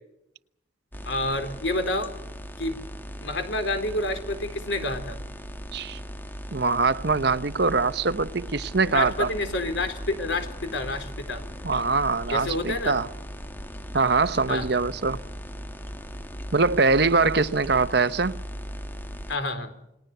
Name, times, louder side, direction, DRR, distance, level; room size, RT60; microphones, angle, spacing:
sound 1, 0.9-19.4, equal, 10° left, 1.1 m, -38 dB
voice 1, 1.1-2.1 2.6-2.8 3.2-5.2 8.8-11.4 12.3-12.9 14.5-14.7 19.3-19.7, left 2 dB, 75° left, 4.1 m, -29 dB
voice 2, 6.5-9.3 11.6-13.1 13.9-15.2 16.5-18.4, right 4 dB, 60° right, 0.9 m, -23 dB
29.0 x 20.0 x 6.8 m
head